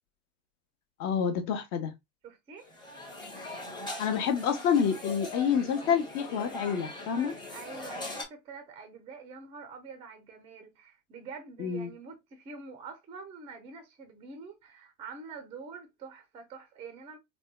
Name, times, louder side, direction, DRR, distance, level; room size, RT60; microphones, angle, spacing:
voice 1, 1.0-1.9 4.0-7.3 11.6-11.9, left 7 dB, 45° left, 0.8 m, -28 dB
voice 2, 2.2-2.7 7.5-17.2, right 4 dB, 15° right, 0.4 m, -46 dB
sound 1, 2.6-8.2, left 1 dB, 10° left, 0.8 m, -41 dB
3.4 x 2.2 x 2.2 m
hypercardioid pair, 105°, 50 cm